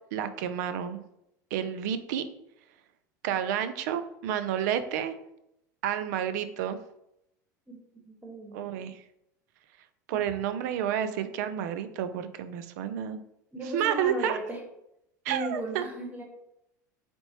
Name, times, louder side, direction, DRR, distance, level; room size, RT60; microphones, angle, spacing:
voice 1, 0.1-1.0 1.5-2.3 3.2-5.1 5.8-6.8 8.5-9.0 10.1-13.2 13.7-14.4 15.3-15.9, right 9 dB, 65° right, 11 dB, 0.5 m, -30 dB
voice 2, 7.7-8.7 10.1-10.2 13.5-14.6 15.3-16.2, right 1 dB, 15° right, 0 dB, 1.4 m, -37 dB
3.9 x 3.5 x 3.0 m, 0.81 s
hypercardioid pair, 95°, 10 cm